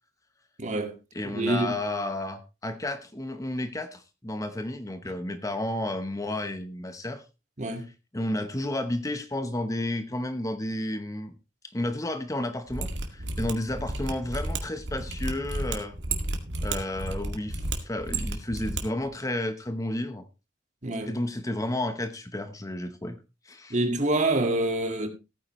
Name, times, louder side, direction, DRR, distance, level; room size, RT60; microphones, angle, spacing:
voice 1, 0.6-0.9 1.3-1.7 5.0-5.1 7.6-7.9 20.8-21.1 23.7-25.1, right 2 dB, 40° right, 2.0 m, -26 dB
voice 2, 1.1-7.2 8.1-11.3 11.7-16.0 16.6-20.3 21.0-23.2 23.4-23.8, left 1 dB, 20° left, 1.0 m, -32 dB
Mechanisms, 12.7-18.8 19.1-19.2, right 2 dB, 70° right, 2.1 m, -32 dB
16.0 x 9.5 x 3.1 m
head